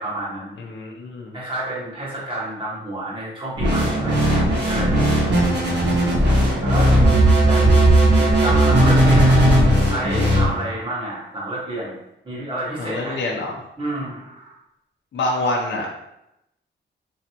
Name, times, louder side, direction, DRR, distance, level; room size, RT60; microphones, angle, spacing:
voice 1, 0.0-0.5 1.3-5.1 6.6-6.9 7.4-7.8 8.1-11.9 12.2-13.2 13.8-14.5, right 1 dB, 25° right, -7 dB, 1.5 m, -29 dB
voice 2, 0.6-1.3 6.7-6.8 12.8-13.6 15.1-15.9, left 2 dB, 70° left, -2 dB, 0.6 m, -26 dB
sound 1, 3.6-10.4, right 1 dB, 60° right, 1.2 m, -16 dB
4.1 x 3.1 x 2.9 m, 0.84 s
wide cardioid pair, 175°, 20 cm